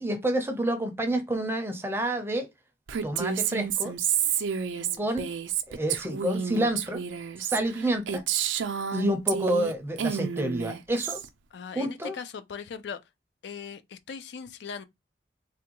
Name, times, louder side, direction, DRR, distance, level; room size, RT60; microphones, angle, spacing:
voice 1, 0.0-2.5 3.0-3.9 5.0-5.3 5.7-7.0 7.4-8.2 8.9-11.2 11.8-12.2, right 1 dB, 15° right, 0.5 m, -28 dB
Female speech woman speaking, 2.9-9.7 10.0-11.3, right 8 dB, 85° right, 0.4 m, -30 dB
voice 2, 4.8-5.1 11.5-13.0 13.4-14.9, left 6 dB, 65° left, 0.4 m, -39 dB
3.4 x 2.2 x 2.9 m
head